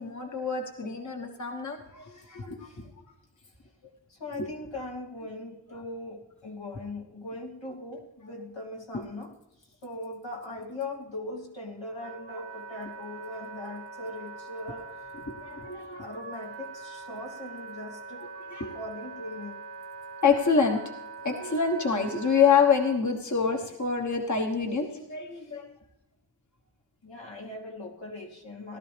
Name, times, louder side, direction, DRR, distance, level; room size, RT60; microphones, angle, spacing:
voice 1, 0.0-2.5 8.9-9.0 15.3-16.0 18.5-18.7 20.2-20.9 21.2-25.7, left 5 dB, 40° left, 3 dB, 1.3 m, -26 dB
voice 2, 2.0-3.1 3.4-3.5 4.1-15.2 16.0-18.3 18.7-19.6 25.3-25.6 27.0-28.8, left 2 dB, 80° left, -1 dB, 2.4 m, -40 dB
Wind instrument woodwind instrument, 11.4-23.0, right 4 dB, 70° right, 0.9 m, -43 dB
17.5 x 12.0 x 3.4 m, 0.87 s
wide cardioid pair, 55°, 44 cm